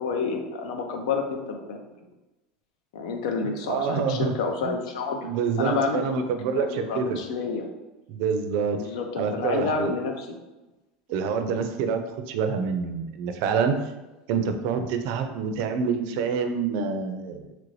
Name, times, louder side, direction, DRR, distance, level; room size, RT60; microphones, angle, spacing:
voice 1, 0.0-1.8 2.9-5.3 5.6-6.2 6.5-7.7 8.8-10.4, left 4 dB, 85° left, 4 dB, 0.5 m, -29 dB
voice 2, 3.7-4.3 4.6-4.7 5.2-7.2 8.1-8.8 9.2-9.9 11.1-12.0 12.3-13.8 14.3-17.4, right 6 dB, 60° right, 7 dB, 0.4 m, -26 dB
3.0 x 2.5 x 3.2 m, 1.0 s
supercardioid pair, 145°, 3 cm